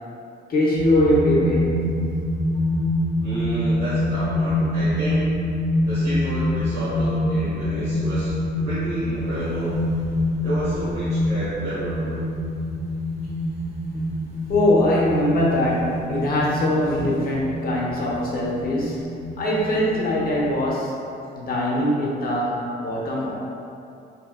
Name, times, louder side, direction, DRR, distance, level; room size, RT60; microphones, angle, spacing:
voice 1, 0.5-1.8 14.5-19.0 19.4-20.9 21.3-23.4, left 1 dB, 50° left, -5 dB, 0.7 m, -22 dB
sound 1, 0.7-20.6, left 1 dB, 35° right, 0.5 m, -26 dB
voice 2, 3.2-5.2 5.8-8.3 8.6-9.7 10.4-12.2, right 1 dB, 55° right, -12 dB, 0.9 m, -30 dB
2.7 x 2.5 x 2.3 m, 2.5 s
cardioid pair, 90°, 20 cm